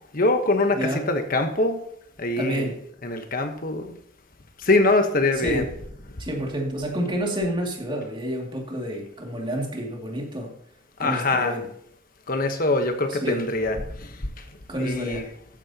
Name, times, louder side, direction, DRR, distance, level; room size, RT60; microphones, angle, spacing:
voice 1, 0.1-1.8 2.2-2.7 3.0-3.9 4.6-5.7 11.0-11.6 12.3-13.8 14.0-14.1 14.8-15.3, left 2 dB, 45° left, 1.2 m, -23 dB
voice 2, 0.8-1.1 2.4-2.8 5.3-5.7 6.2-10.5 11.0-11.7 13.1-13.4 14.7-15.3, equal, 25° right, 2.5 m, -29 dB
13.5 x 9.9 x 2.9 m
head